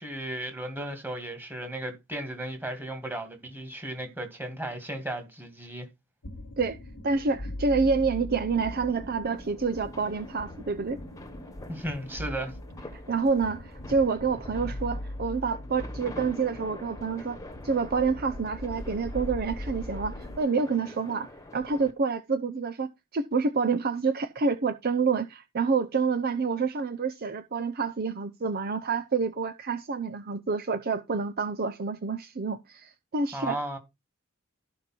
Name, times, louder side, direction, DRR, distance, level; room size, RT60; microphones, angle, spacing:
voice 1, 0.0-5.9 11.7-12.5 33.3-33.8, right 1 dB, 10° right, 2.3 m, -35 dB
sound 1, 6.2-20.4, left 1 dB, 85° left, 1.4 m, -40 dB
voice 2, 7.0-11.0 13.1-17.4 17.6-21.3 21.5-33.8, right 4 dB, 45° right, 0.6 m, -28 dB
sound 2, 8.7-21.9, left 1 dB, 15° left, 1.4 m, -46 dB
13.0 x 5.2 x 4.4 m
head